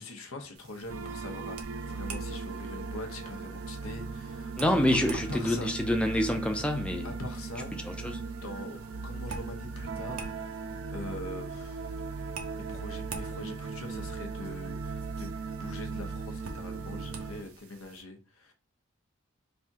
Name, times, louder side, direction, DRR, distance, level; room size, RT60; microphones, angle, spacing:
voice 1, 0.0-5.7 7.0-8.0 8.4-12.3 12.7-15.3 15.6-18.5, left 2 dB, 80° left, 0.8 m, -43 dB
sound 1, 0.5-18.0, right 4 dB, 85° right, 0.7 m, -49 dB
sound 2, 0.9-17.4, right 4 dB, 65° right, 0.4 m, -38 dB
voice 2, 4.6-7.1 7.9-8.2, left 1 dB, 5° left, 0.4 m, -27 dB
3.4 x 2.7 x 3.5 m
head